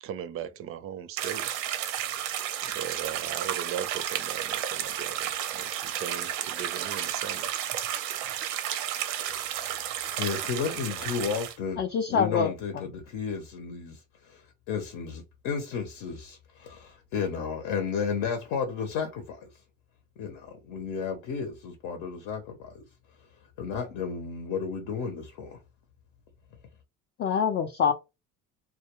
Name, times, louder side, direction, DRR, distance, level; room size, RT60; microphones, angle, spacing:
voice 1, 0.0-1.5 2.6-7.7, right 9 dB, 40° right, 0.4 m, -38 dB
sound 1, 1.2-11.5, right 11 dB, 90° right, 0.6 m, -32 dB
voice 2, 9.5-11.8 12.1-19.5 20.2-22.8 23.6-25.6, left 6 dB, 70° left, 0.8 m, -33 dB
voice 3, 11.8-12.8 27.2-27.9, left 7 dB, 35° left, 0.4 m, -26 dB
2.3 x 2.1 x 2.9 m
supercardioid pair, 100°, 33 cm